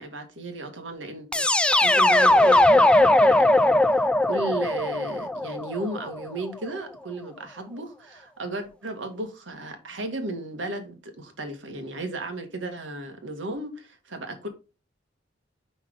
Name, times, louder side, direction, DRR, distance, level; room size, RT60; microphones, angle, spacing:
voice 1, 0.0-14.5, right 2 dB, 90° right, 1.8 m, -35 dB
sound 1, 1.3-6.2, left 1 dB, 5° left, 0.4 m, -19 dB
6.0 x 5.6 x 3.8 m
head